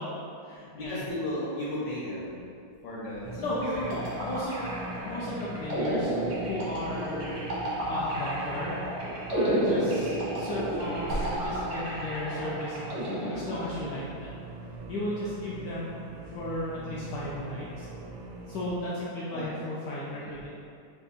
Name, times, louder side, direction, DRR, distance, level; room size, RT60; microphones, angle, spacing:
voice 1, 0.0-1.0 3.4-4.7 5.0-8.9 9.3-14.4 14.9-17.9 18.5-20.5, left 1 dB, 85° left, -7 dB, 0.9 m, -35 dB
voice 2, 0.7-2.4 2.8-3.5 9.4-9.7 19.3-19.5 20.2-20.4, left 1 dB, 70° left, -8 dB, 1.3 m, -35 dB
sound 1, 3.0-4.8 6.9-7.1 7.9-8.7 9.6-9.7 10.1-12.9 13.5-13.6 16.2-18.3, right 1 dB, 50° left, 0.7 m, -44 dB
sound 2, 3.2-18.8, right 2 dB, 90° right, 1.5 m, -43 dB
sound 3, 3.6-14.0, right 1 dB, 60° right, 0.7 m, -32 dB
3.5 x 2.3 x 4.0 m, 2.4 s
omnidirectional pair, 2.4 m